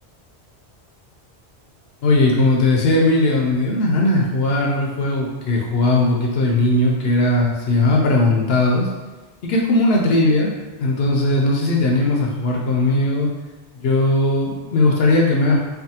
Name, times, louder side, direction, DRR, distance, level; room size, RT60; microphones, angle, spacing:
voice 1, 2.0-8.9 9.4-10.5 10.8-13.3 13.8-15.7, left 2 dB, 70° left, -1 dB, 0.8 m, -18 dB
3.4 x 2.0 x 2.7 m, 1.2 s
omnidirectional pair, 1.1 m